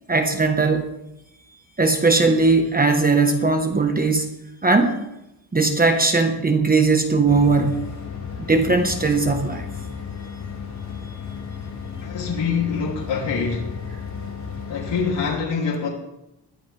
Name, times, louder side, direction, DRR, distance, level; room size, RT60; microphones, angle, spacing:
voice 1, 0.1-0.8 1.8-4.3 4.6-5.0 5.5-7.9 8.5-9.7, right 3 dB, 20° right, 5 dB, 1.3 m, -19 dB
sound 1, 7.3-15.3, left 6 dB, 40° left, 4.6 m, -34 dB
voice 2, 12.0-13.8 14.7-15.9, left 5 dB, 80° left, -4 dB, 3.1 m, -25 dB
21.0 x 13.5 x 3.5 m, 0.89 s
wide cardioid pair, 135°, 43 cm